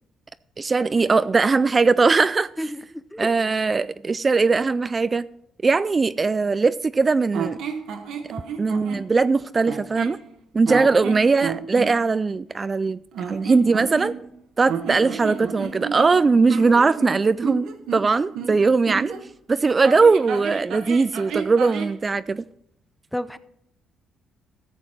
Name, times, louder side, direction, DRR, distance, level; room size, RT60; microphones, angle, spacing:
voice 1, 0.6-2.5 3.2-5.3 5.6-7.6 8.6-10.2 10.5-13.0 13.3-14.1 14.6-19.1 19.5-22.5, right 4 dB, 30° right, 0.3 m, -20 dB
voice 2, 2.6-3.3 10.7-11.0 23.1-23.4, equal, 5° left, 0.6 m, -30 dB
sound 1, 7.3-9.1 9.6-10.2 10.7-11.9 13.1-14.4 14.7-19.2 19.8-22.0, right 6 dB, 80° right, 1.3 m, -31 dB
14.5 x 7.1 x 4.5 m
cardioid pair, 90°, 0 cm